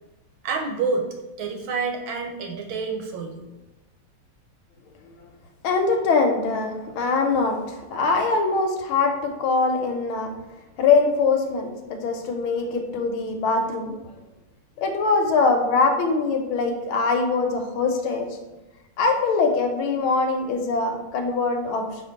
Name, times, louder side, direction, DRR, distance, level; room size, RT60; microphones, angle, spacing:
voice 1, 0.4-1.1 1.4-3.5, right 4 dB, 75° right, 2 dB, 1.3 m, -28 dB
voice 2, 5.6-10.3 10.8-14.0 14.8-18.3 19.0-21.9, left 4 dB, 80° left, 5 dB, 1.4 m, -22 dB
4.6 x 2.8 x 3.8 m, 1.1 s
omnidirectional pair, 2.4 m